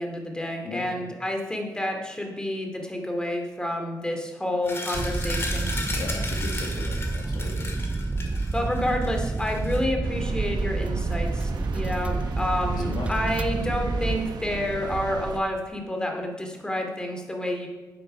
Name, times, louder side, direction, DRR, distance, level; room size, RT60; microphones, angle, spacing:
voice 1, 0.0-5.7 8.5-17.7, left 1 dB, 10° left, 2 dB, 2.4 m, -29 dB
sound 1, 4.6-9.8, left 2 dB, 35° left, 2.2 m, -35 dB
sound 2, 4.9-14.2, right 3 dB, 15° right, 0.4 m, -29 dB
voice 2, 5.9-7.8 9.0-9.1 12.8-13.1, left 3 dB, 75° left, 3 dB, 1.8 m, -37 dB
sound 3, 10.0-15.4, right 6 dB, 80° right, 1.0 m, -35 dB
10.5 x 10.0 x 5.5 m, 1.3 s
cardioid pair, 110°, 7 cm